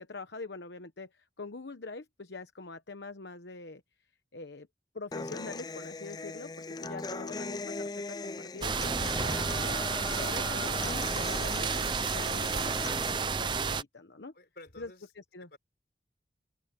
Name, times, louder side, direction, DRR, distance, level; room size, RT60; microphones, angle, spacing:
voice 1, 0.0-3.8 4.3-4.7 4.9-6.5 6.8-9.8 10.1-14.3 14.8-15.5, left 3 dB, 80° left, 1.1 m, -44 dB
Human voice / Acoustic guitar, 5.1-13.1, left 3 dB, 20° left, 0.4 m, -39 dB
sound 1, 8.6-13.8, right 5 dB, 25° right, 0.5 m, -31 dB
voice 2, 14.3-15.1 15.5-15.6, left 2 dB, 60° left, 4.7 m, -52 dB
open air
head